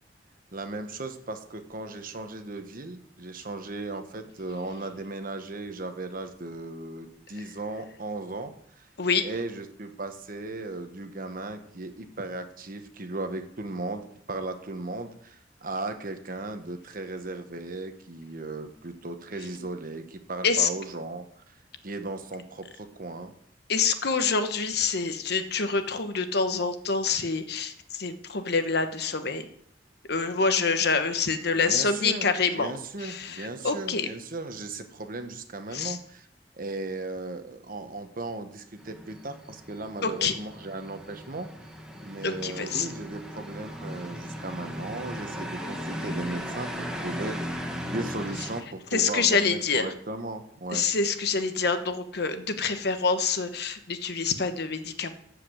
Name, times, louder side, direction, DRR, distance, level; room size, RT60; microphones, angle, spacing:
voice 1, 0.5-8.5 9.2-21.2 21.8-23.3 31.6-32.3 32.5-36.3 36.6-41.5 42.0-47.4 47.9-50.9, right 2 dB, 50° right, 7 dB, 1.1 m, -36 dB
voice 2, 23.7-29.5 30.1-32.7 33.0-34.1 35.7-36.0 40.0-40.3 42.2-42.9 48.9-49.9 50.7-55.1, left 5 dB, 65° left, 9 dB, 1.1 m, -26 dB
sound 1, 38.8-48.6, equal, 5° right, 1.4 m, -37 dB
13.5 x 5.1 x 7.8 m, 0.70 s
head